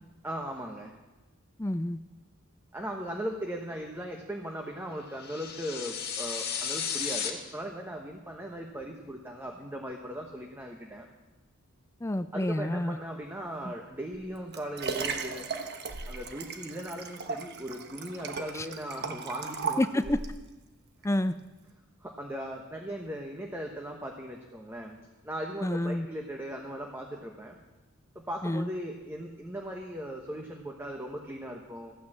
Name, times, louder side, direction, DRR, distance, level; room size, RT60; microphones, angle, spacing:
voice 1, 0.2-0.9 2.7-11.1 12.3-15.5 16.1-20.1 22.0-25.0 25.2-27.6 28.1-31.9, equal, 10° right, 1 dB, 1.1 m, -38 dB
voice 2, 1.6-2.0 12.0-13.0 18.5-18.7 19.8-20.2 21.0-21.4 25.6-26.1 28.4-28.7, left 1 dB, 15° left, 12 dB, 0.4 m, -28 dB
sound 1, 5.2-7.3, left 7 dB, 50° left, 1.8 m, -34 dB
Liquid, 14.1-20.4 21.0-21.1, right 5 dB, 50° right, 1.2 m, -36 dB
14.5 x 9.3 x 7.4 m, 1.1 s
head